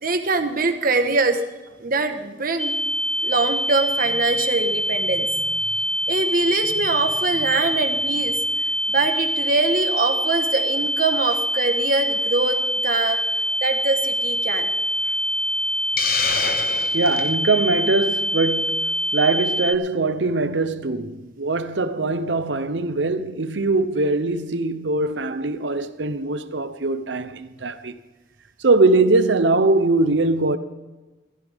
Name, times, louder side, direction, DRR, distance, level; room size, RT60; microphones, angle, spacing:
voice 1, 0.0-1.4 1.8-2.7 3.2-5.3 6.1-8.4 8.9-13.2 13.6-14.7, right 3 dB, 50° right, 1.4 m, -23 dB
sound 1, 2.6-19.7, equal, 5° left, 0.4 m, -24 dB
Hiss, 16.0-17.3, left 6 dB, 55° left, 1.1 m, -26 dB
voice 2, 16.9-28.0 28.6-30.6, right 3 dB, 70° right, 0.9 m, -21 dB
15.5 x 14.5 x 3.6 m
head